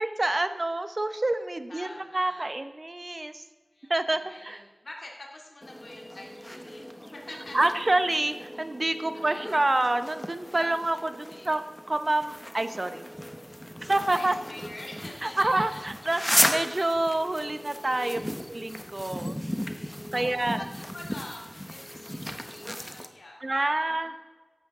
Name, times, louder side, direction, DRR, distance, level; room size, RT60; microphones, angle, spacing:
voice 1, 0.0-3.4 3.9-4.6 7.5-11.6 11.9-13.0 13.9-14.3 15.2-18.2 18.5-19.3 20.1-20.6 23.4-24.1, right 2 dB, 40° right, 10 dB, 0.9 m, -27 dB
voice 2, 1.7-2.5 3.7-7.7 9.1-9.5 10.6-11.7 14.1-15.8 17.9-18.4 19.1-19.8 20.1-24.2, left 2 dB, 65° left, -1 dB, 2.7 m, -46 dB
sound 1, 5.6-23.1, equal, 5° left, 1.1 m, -35 dB
15.0 x 11.5 x 3.8 m, 1.3 s
wide cardioid pair, 60°, 0 cm